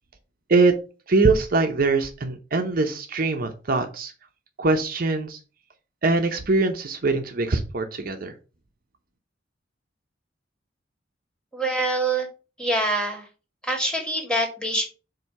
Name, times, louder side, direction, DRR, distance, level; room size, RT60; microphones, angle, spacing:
voice 1, 1.1-4.1 4.6-5.4 6.0-8.3, right 3 dB, 50° right, 5 dB, 0.8 m, -22 dB
voice 2, 11.5-12.3 12.6-13.3 13.6-14.9, right 1 dB, 5° left, 1 dB, 1.9 m, -25 dB
7.6 x 2.7 x 5.8 m, 0.34 s
head